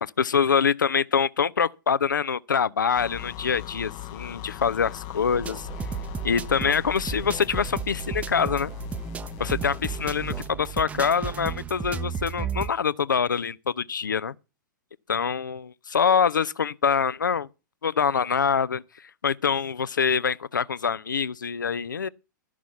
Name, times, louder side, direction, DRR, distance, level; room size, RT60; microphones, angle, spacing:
voice 1, 0.0-5.7 6.2-8.7 9.4-14.4 15.1-17.5 17.8-18.8 19.2-22.1, left 6 dB, 75° left, 0.5 m, -25 dB
sound 1, 3.0-10.5, left 13 dB, 35° left, 0.7 m, -39 dB
sound 2, 5.3-12.7, right 8 dB, 15° right, 0.6 m, -34 dB
12.0 x 6.1 x 6.9 m
figure-of-eight pair, 105°, 11 cm